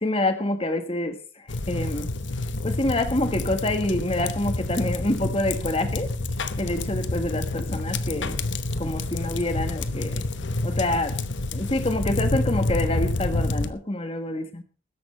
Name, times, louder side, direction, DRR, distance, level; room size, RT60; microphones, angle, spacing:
voice 1, 0.0-1.2 1.7-2.1 2.6-6.1 6.6-8.4 8.8-10.3 10.6-11.2 11.5-14.6, left 1 dB, 30° left, 8 dB, 1.5 m, -27 dB
sound 1, 1.5-13.7, left 2 dB, 65° left, 1.1 m, -28 dB
20.0 x 11.0 x 3.3 m, 0.38 s
head